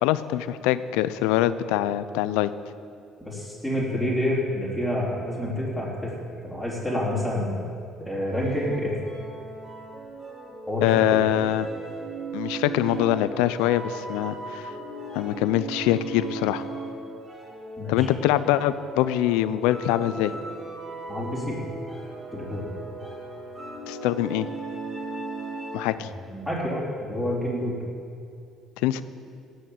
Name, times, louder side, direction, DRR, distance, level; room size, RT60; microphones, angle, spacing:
voice 1, 0.0-2.5 10.8-11.7 12.3-14.7 15.1-16.6 17.9-20.3 23.9-24.5 25.7-26.1 28.8-29.0, left 13 dB, 90° left, 14 dB, 0.5 m, -24 dB
voice 2, 3.2-6.1 6.4-7.6 8.0-8.9 10.7-11.2 17.8-18.1 21.1-21.6 22.3-22.7 25.9-27.8, left 1 dB, 5° right, -7 dB, 4.3 m, -28 dB
sound 1, 8.3-26.0, right 3 dB, 25° right, 4.3 m, -37 dB
17.5 x 6.5 x 7.7 m, 2.4 s
supercardioid pair, 90°, 0 cm